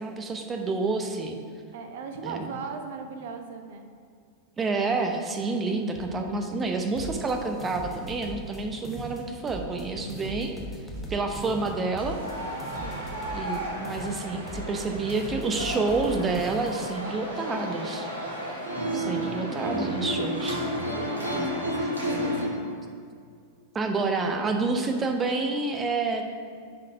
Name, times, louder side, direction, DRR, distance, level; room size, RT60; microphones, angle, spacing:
voice 1, 0.0-1.4 2.2-2.5 4.6-10.5 11.1-12.2 13.3-18.1 18.9-20.6 21.3-21.5 23.7-26.3, right 3 dB, 20° right, 4 dB, 0.8 m, -28 dB
voice 2, 1.7-3.8 12.8-13.0 19.0-19.3 21.0-22.8, right 4 dB, 55° right, 6 dB, 0.8 m, -39 dB
sound 1, 5.6-16.3 16.9-17.0, right 2 dB, 40° right, 1.8 m, -46 dB
sound 2, 7.0-8.6 8.8-9.8 10.1-13.6 13.8-14.8 15.1-17.0, left 1 dB, 10° left, 1.1 m, -40 dB
sound 3, 11.4-22.5, equal, 75° right, 2.0 m, -32 dB
9.7 x 4.2 x 5.0 m, 2.2 s
figure-of-eight pair, 90°, 0 cm